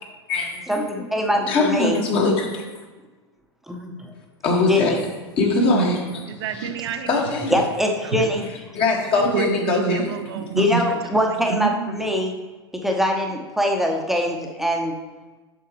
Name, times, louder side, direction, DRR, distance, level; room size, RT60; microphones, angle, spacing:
voice 1, 0.7-2.0 3.7-4.1 4.7-5.0 7.5-8.4 10.6-12.3 12.8-14.9, equal, ahead, 1 dB, 0.9 m, -23 dB
voice 2, 1.5-2.6 4.4-5.0 5.4-6.0 6.6-6.7 7.1-7.5 8.7-10.1, left 3 dB, 40° left, 0 dB, 1.8 m, -21 dB
voice 3, 5.6-7.1 8.0-8.3 9.1-12.0, right 7 dB, 70° right, 6 dB, 0.8 m, -27 dB
8.1 x 6.7 x 3.1 m, 1.3 s
hypercardioid pair, 90°, 14 cm